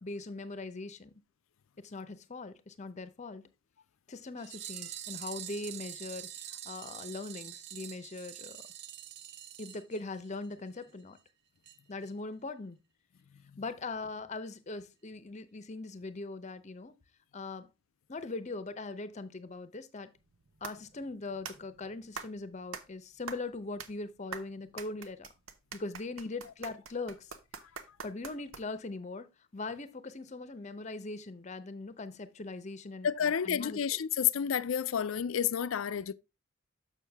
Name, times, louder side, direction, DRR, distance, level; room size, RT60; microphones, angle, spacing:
voice 1, 0.0-1.1 1.8-3.4 4.1-8.6 9.6-11.2 11.9-12.8 13.6-16.9 17.3-17.7 18.1-20.1 20.6-25.3 25.7-27.3 28.0-29.3 29.5-34.0, left 3 dB, 35° left, 0.7 m, -41 dB
sound 1, 4.4-10.5 10.8-10.9 11.2-11.3 11.7-11.8 12.1-12.2, right 11 dB, 55° right, 0.6 m, -45 dB
sound 2, 20.2-28.9, right 5 dB, 80° right, 0.9 m, -46 dB
voice 2, 33.0-36.1, left 8 dB, 80° left, 0.4 m, -30 dB
6.7 x 6.4 x 3.4 m
head